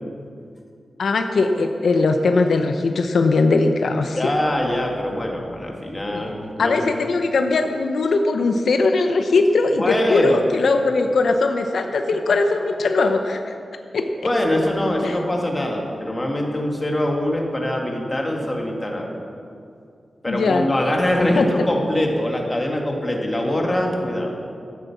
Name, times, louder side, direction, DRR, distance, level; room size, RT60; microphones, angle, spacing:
voice 1, 1.0-4.2 6.1-6.2 6.6-13.6 13.9-14.1 15.0-15.2 20.3-20.7 21.4-21.5, left 3 dB, 80° left, 5 dB, 0.8 m, -20 dB
voice 2, 4.2-6.7 9.7-10.4 14.2-19.1 20.2-24.3, left 1 dB, 20° left, 0 dB, 1.9 m, -23 dB
12.5 x 9.3 x 7.2 m, 2.4 s
wide cardioid pair, 140°, 0 cm